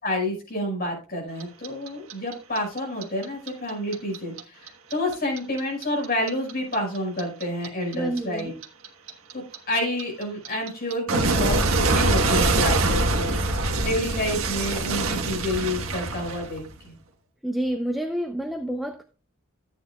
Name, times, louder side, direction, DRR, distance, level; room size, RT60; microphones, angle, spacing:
voice 1, 0.0-8.5 9.3-16.9, left 1 dB, 45° left, 5.3 m, -29 dB
Clock, 1.4-4.4 4.7-7.7 7.9-16.8, right 2 dB, 80° right, 1.3 m, -24 dB
voice 2, 7.9-8.5 17.4-19.0, right 1 dB, ahead, 0.7 m, -28 dB
14.0 x 9.2 x 2.3 m
head